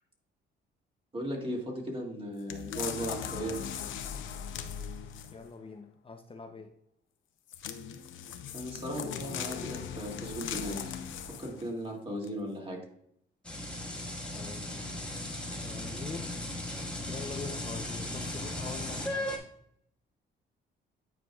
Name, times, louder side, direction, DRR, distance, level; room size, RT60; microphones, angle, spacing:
voice 1, 1.1-3.6 8.5-10.9 11.4-12.8, equal, 25° right, -1 dB, 2.2 m, -37 dB
sound 1, 2.5-5.5 7.5-11.7 12.2-12.3, left 8 dB, 75° left, 0.7 m, -39 dB
voice 2, 5.3-6.7 14.3-15.3 15.6-16.3 17.1-19.4, left 4 dB, 25° left, 4 dB, 0.6 m, -44 dB
sound 2, 13.4-19.4, left 1 dB, 5° left, 1.6 m, -37 dB
9.4 x 4.7 x 2.3 m, 0.70 s
cardioid pair, 90°, 20 cm